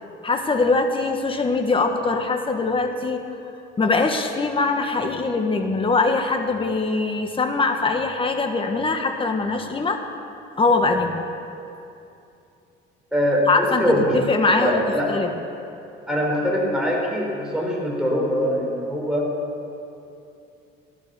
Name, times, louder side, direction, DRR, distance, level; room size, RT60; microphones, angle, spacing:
voice 1, 0.2-3.2 3.8-10.0 10.6-11.2 13.5-14.8 15.1-15.3, left 3 dB, 25° left, 5 dB, 1.5 m, -22 dB
voice 2, 13.1-14.2 14.6-15.1 16.1-19.2, equal, 5° right, -2 dB, 4.2 m, -22 dB
15.5 x 11.5 x 7.0 m, 2.7 s
cardioid pair, 115°, 21 cm